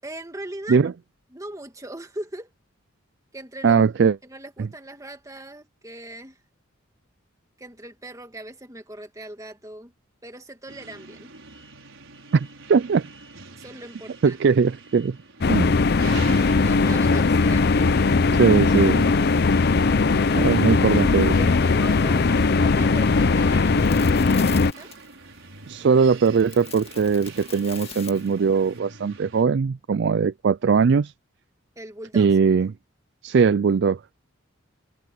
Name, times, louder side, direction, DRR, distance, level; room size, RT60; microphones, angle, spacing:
voice 1, 0.0-0.9 1.3-2.5 3.3-3.8 4.2-6.4 7.6-9.9 10.2-11.3 13.5-14.4 16.6-17.9 20.2-20.8 21.3-24.9 31.7-32.3, right 1 dB, 15° right, 1.7 m, -40 dB
voice 2, 3.6-4.2 12.3-13.1 14.2-15.2 15.5-15.7 18.3-19.1 20.4-21.5 25.7-31.1 32.1-32.7 33.2-34.0, right 5 dB, 55° right, 0.4 m, -20 dB
sound 1, 10.7-29.4, right 4 dB, 75° right, 5.4 m, -44 dB
sound 2, 15.4-24.7, left 4 dB, 50° left, 0.6 m, -19 dB
sound 3, 22.9-28.8, left 8 dB, 30° left, 1.8 m, -43 dB
head